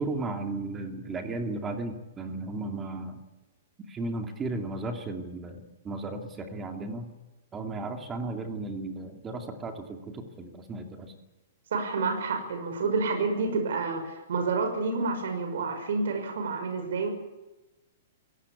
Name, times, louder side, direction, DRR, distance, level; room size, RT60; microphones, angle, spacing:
voice 1, 0.0-3.2 3.9-7.1 7.5-11.1, right 2 dB, 10° right, 4 dB, 2.6 m, -35 dB
voice 2, 11.7-17.1, right 4 dB, 70° right, 5 dB, 6.0 m, -29 dB
26.0 x 18.0 x 8.5 m, 1.1 s
hypercardioid pair, 170°, 0 cm